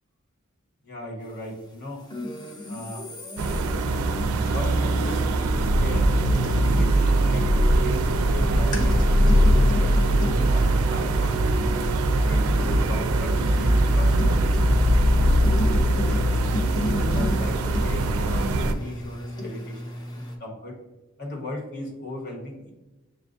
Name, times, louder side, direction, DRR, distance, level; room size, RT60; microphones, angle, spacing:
voice 1, 0.8-2.0 2.6-3.0 4.5-6.1 6.4-11.8 12.3-16.4 16.8-20.8 21.2-22.7, left 1 dB, 50° left, -2 dB, 1.3 m, -38 dB
sound 1, 2.1-20.4, left 1 dB, 20° left, 0.5 m, -35 dB
sound 2, 3.4-18.7, right 1 dB, 85° right, 0.4 m, -21 dB
6.5 x 2.3 x 2.5 m, 1.1 s
head